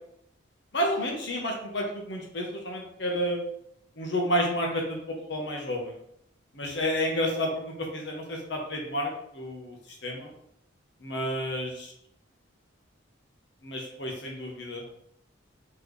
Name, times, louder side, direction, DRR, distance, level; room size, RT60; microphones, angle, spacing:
voice 1, 0.7-3.4 4.0-6.0 6.5-9.8 10.0-10.3 11.0-11.9 13.6-14.8, equal, 60° left, 0 dB, 1.1 m, -30 dB
4.2 x 3.2 x 3.3 m, 0.71 s
head